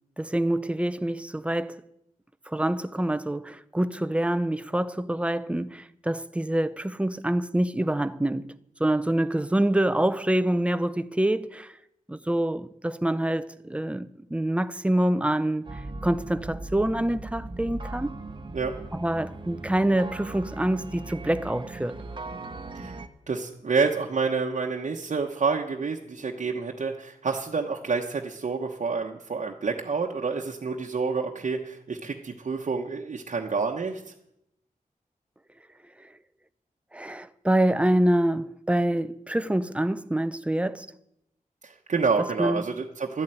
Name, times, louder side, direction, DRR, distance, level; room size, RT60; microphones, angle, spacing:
voice 1, 0.2-1.8 2.5-8.5 8.8-11.7 12.1-15.7 16.0-18.1 18.9-22.0 36.9-40.9 42.4-42.6, right 1 dB, 10° right, 0.6 m, -26 dB
sound 1, 15.6-23.1, right 2 dB, 35° right, 1.0 m, -39 dB
voice 2, 23.3-34.0 41.6-43.2, right 4 dB, 55° right, 1.1 m, -28 dB
13.0 x 7.6 x 10.0 m
wide cardioid pair, 125°, 14 cm